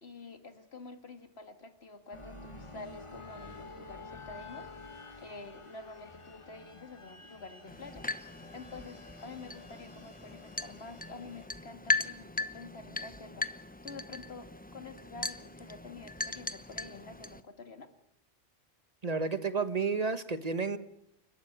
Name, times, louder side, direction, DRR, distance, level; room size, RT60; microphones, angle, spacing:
voice 1, 0.0-4.7 5.2-8.1 8.5-17.9, left 3 dB, 75° left, 8 dB, 2.2 m, -48 dB
sound 1, 2.1-11.5, left 3 dB, 30° left, 1.6 m, -50 dB
sound 2, 7.7-17.4, left 2 dB, 10° left, 0.7 m, -38 dB
voice 2, 19.0-20.8, right 4 dB, 40° right, 11 dB, 1.3 m, -31 dB
29.5 x 12.5 x 9.2 m, 0.76 s
omnidirectional pair, 1.1 m